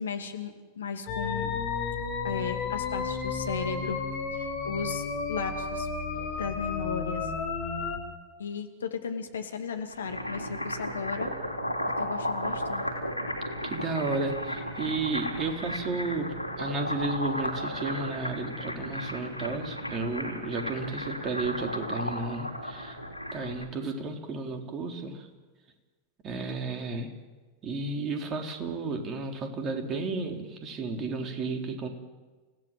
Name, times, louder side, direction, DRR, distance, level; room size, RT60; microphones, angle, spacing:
voice 1, 0.0-1.5 2.2-4.0 4.3-7.3 8.4-11.3 12.0-12.8, left 6 dB, 70° left, 6 dB, 2.7 m, -35 dB
sound 1, 1.1-8.0, left 5 dB, 40° left, 6.0 m, -32 dB
sound 2, 9.8-23.7, equal, 90° right, 3.2 m, -34 dB
voice 2, 13.6-23.0 23.3-25.3 26.2-27.1 27.6-31.9, right 3 dB, 30° right, 4 dB, 3.8 m, -33 dB
30.0 x 17.0 x 7.6 m, 1.3 s
figure-of-eight pair, 90°, 0 cm